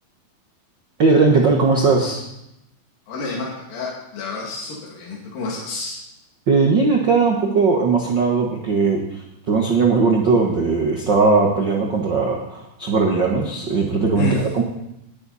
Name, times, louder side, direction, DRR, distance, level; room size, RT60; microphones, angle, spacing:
voice 1, 1.0-2.2 6.5-14.6, right 4 dB, 70° right, 0 dB, 1.0 m, -18 dB
voice 2, 3.1-6.0 14.2-14.5, left 2 dB, 65° left, -5 dB, 4.0 m, -29 dB
19.0 x 10.0 x 4.2 m, 0.85 s
omnidirectional pair, 4.3 m